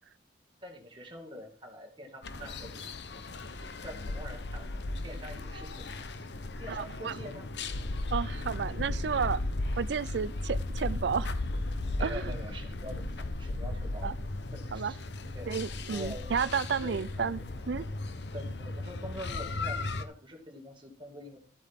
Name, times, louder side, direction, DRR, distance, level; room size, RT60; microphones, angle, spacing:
voice 1, 0.6-2.9 3.8-6.3 6.6-7.5 12.0-14.1 14.5-15.5 15.9-17.3 18.3-21.4, equal, 25° right, 2.1 m, -45 dB
sound 1, 2.2-20.1, left 2 dB, 70° left, 0.8 m, -36 dB
voice 2, 6.7-7.2 8.1-9.4 9.8-11.3 12.0-12.2 14.0-14.1 14.7-14.9 15.5-17.4 17.7-17.9, right 6 dB, 70° right, 0.4 m, -32 dB
13.0 x 8.3 x 3.6 m
head